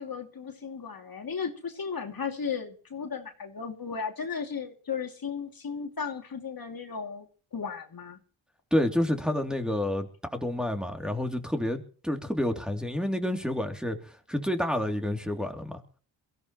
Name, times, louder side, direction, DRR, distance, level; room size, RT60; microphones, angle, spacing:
voice 1, 0.0-7.3 7.5-8.2, left 6 dB, 45° left, 2.7 m, -35 dB
voice 2, 8.7-15.8, left 1 dB, ahead, 3.0 m, -29 dB
22.5 x 15.0 x 3.1 m
supercardioid pair, 55°, 47 cm